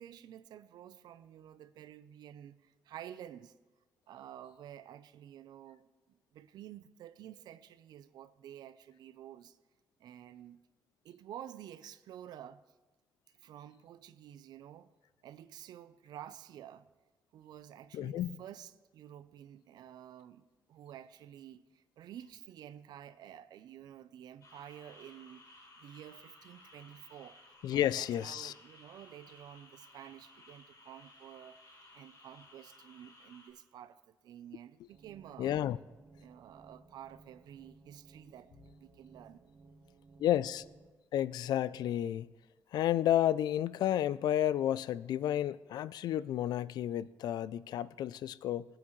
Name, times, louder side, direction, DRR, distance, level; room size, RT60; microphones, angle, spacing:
voice 1, 0.0-3.5 4.1-5.9 6.3-9.6 10.0-10.6 11.0-12.6 13.4-14.9 15.2-16.9 17.3-25.5 25.8-27.4 27.7-31.6 31.9-35.6 36.2-38.5 38.8-39.4, right 10 dB, 90° right, 0.5 m, -51 dB
voice 2, 17.9-18.4 27.6-28.5 35.4-35.8 40.2-40.7 41.1-42.3 42.7-48.7, left 11 dB, 85° left, 0.4 m, -31 dB
sound 1, 24.4-33.5, left 2 dB, 60° left, 4.2 m, -58 dB
sound 2, 34.9-40.9, right 3 dB, 40° right, 0.9 m, -60 dB
21.0 x 8.9 x 3.1 m
cardioid pair, 95°, 7 cm